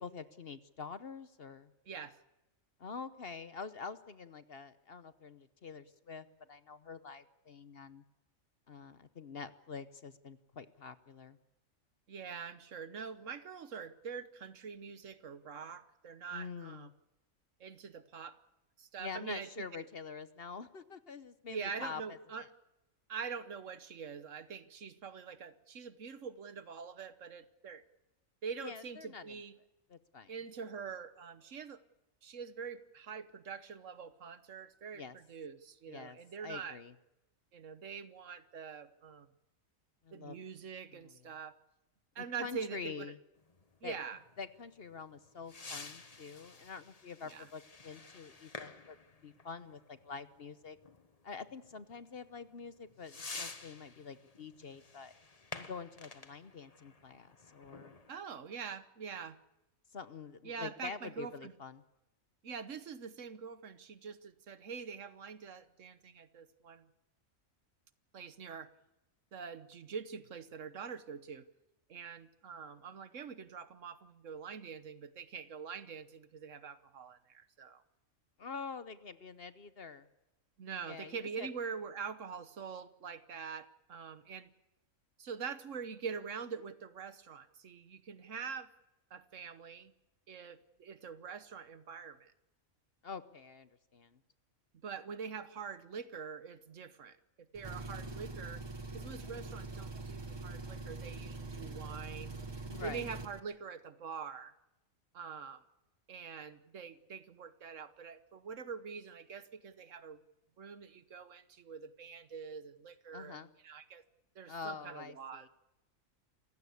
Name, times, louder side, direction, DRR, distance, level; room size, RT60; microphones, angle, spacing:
voice 1, 0.0-1.7 2.8-8.0 8.7-11.4 16.3-16.9 19.0-22.5 28.6-29.3 29.9-30.3 34.9-35.2 35.9-36.9 40.0-40.4 40.9-41.2 42.2-43.2 43.8-44.0 44.4-49.0 49.2-50.8 51.2-55.1 55.5-58.0 59.9-61.8 78.4-80.1 80.8-81.5 93.0-94.2 102.7-103.1 113.1-113.5 114.5-115.5, left 5 dB, 50° left, 13 dB, 1.1 m, -46 dB
voice 2, 1.9-2.2 12.1-16.9 17.6-18.4 18.8-19.9 21.5-22.4 23.1-27.8 28.4-29.6 30.3-31.8 32.2-36.8 37.5-39.3 40.1-41.5 42.1-43.1 43.8-44.2 47.2-47.5 58.1-59.4 60.4-61.5 62.4-66.9 68.1-68.7 69.3-71.5 71.9-77.8 80.6-84.5 85.2-88.7 89.1-89.9 90.3-92.3 94.8-97.2 97.5-98.6 98.9-102.4 102.8-104.5 105.1-105.6 106.1-110.2 110.6-114.0 114.3-115.5, right 6 dB, 65° right, 13 dB, 1.4 m, -44 dB
sound 1, 43.4-58.1, left 3 dB, 30° left, 1.2 m, -51 dB
Engine, 97.5-103.4, right 3 dB, 20° right, 0.9 m, -44 dB
27.5 x 16.0 x 8.3 m, 0.97 s
omnidirectional pair, 1.4 m